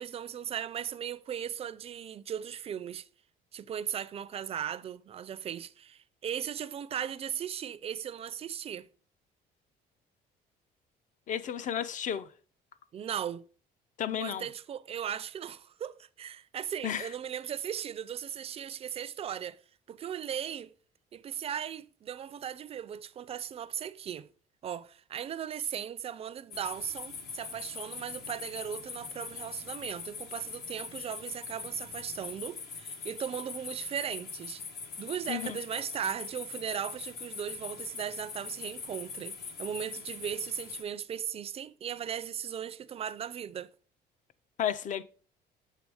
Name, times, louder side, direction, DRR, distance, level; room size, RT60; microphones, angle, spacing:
voice 1, 0.0-3.1 3.5-8.9 12.9-13.4 14.2-19.6 19.9-20.7 21.1-24.3 24.6-34.6 35.0-43.7, right 9 dB, 35° right, 0.4 m, -37 dB
voice 2, 11.3-12.3 14.0-14.5 16.8-17.1 35.3-35.5 44.6-45.0, left 9 dB, 50° left, 0.5 m, -32 dB
sound 1, 26.5-40.8, left 5 dB, 70° left, 1.1 m, -42 dB
7.5 x 3.4 x 4.7 m
cardioid pair, 110°, 17 cm